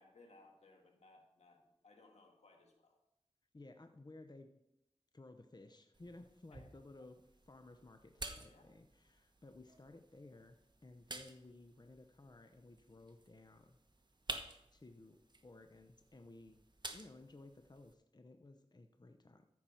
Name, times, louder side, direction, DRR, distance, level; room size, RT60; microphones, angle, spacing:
voice 1, 0.0-3.0 6.5-6.7 8.5-8.7, left 2 dB, 80° left, 2 dB, 1.8 m, -64 dB
voice 2, 3.5-4.5 5.1-13.8 14.7-16.6 16.9-19.4, left 2 dB, 40° left, 6 dB, 0.8 m, -57 dB
sound 1, 5.9-17.9, right 2 dB, 40° right, 1.1 m, -52 dB
14.0 x 5.8 x 4.4 m, 0.84 s
cardioid pair, 45°, 11 cm